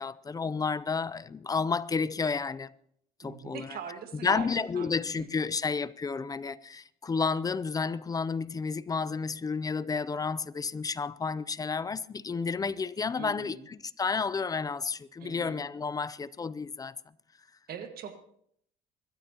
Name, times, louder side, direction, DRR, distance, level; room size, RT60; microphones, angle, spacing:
voice 1, 0.0-2.7 3.2-3.7 4.2-17.0, left 5 dB, 20° left, 0.5 m, -31 dB
voice 2, 3.2-4.5 4.7-5.5 13.2-13.7 15.2-15.6 17.7-18.1, right 7 dB, 65° right, 1.7 m, -42 dB
24.5 x 13.0 x 2.9 m
cardioid pair, 110°, 17 cm